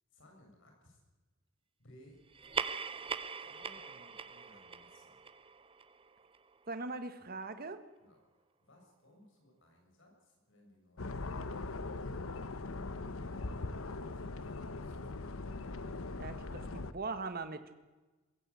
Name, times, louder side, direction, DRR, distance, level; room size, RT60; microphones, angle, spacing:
voice 1, 0.1-1.0 1.8-2.2 3.3-5.2 8.0-13.0 13.3-15.1, left 1 dB, 65° left, 2 dB, 7.0 m, -63 dB
sound 1, 2.3-7.2, right 5 dB, 25° right, 0.7 m, -42 dB
voice 2, 6.7-7.8 16.1-17.7, right 3 dB, 45° right, 9 dB, 1.6 m, -41 dB
sound 2, 11.0-16.9, left 3 dB, 85° left, 1.0 m, -40 dB
21.5 x 15.5 x 8.5 m, 1.2 s
head